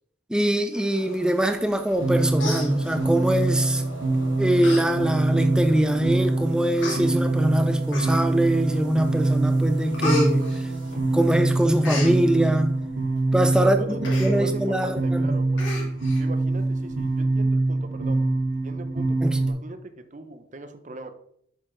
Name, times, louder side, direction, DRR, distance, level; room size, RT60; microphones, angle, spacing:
voice 1, 0.3-3.8 4.4-10.5 11.1-12.7 13.3-13.8 14.2-15.4 19.2-19.4, right 1 dB, 5° right, 0.5 m, -23 dB
sound 1, 0.7-7.4, left 2 dB, 90° left, 1.0 m, -46 dB
Human voice, 1.9-2.1 2.4-3.3 4.0-4.2 4.6-4.8 5.2-5.3 6.1-6.2 6.8-7.0 7.9-8.4 8.9-9.3 9.6-11.3 11.5-12.1 14.0-14.3 14.7-14.8 15.1-15.2 15.6-16.2 16.6-16.7, left 2 dB, 75° left, 2.5 m, -31 dB
sound 2, 2.0-19.5, right 2 dB, 70° right, 1.6 m, -24 dB
voice 2, 13.6-18.3 18.6-21.1, right 2 dB, 40° right, 0.7 m, -39 dB
7.4 x 6.6 x 3.3 m
head